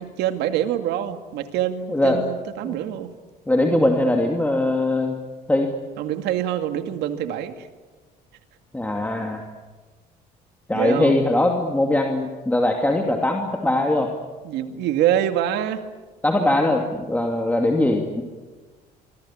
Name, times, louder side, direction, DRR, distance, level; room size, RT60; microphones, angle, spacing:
voice 1, 0.0-3.1 6.0-7.7 10.7-11.2 14.4-15.8, right 11 dB, 85° right, 7 dB, 2.3 m, -25 dB
voice 2, 1.9-2.2 2.6-2.8 3.5-5.2 5.5-5.7 8.7-9.4 10.7-14.1 16.2-18.2, left 1 dB, 10° left, 2 dB, 2.7 m, -21 dB
25.5 x 24.5 x 8.8 m, 1.3 s
cardioid pair, 110°, 17 cm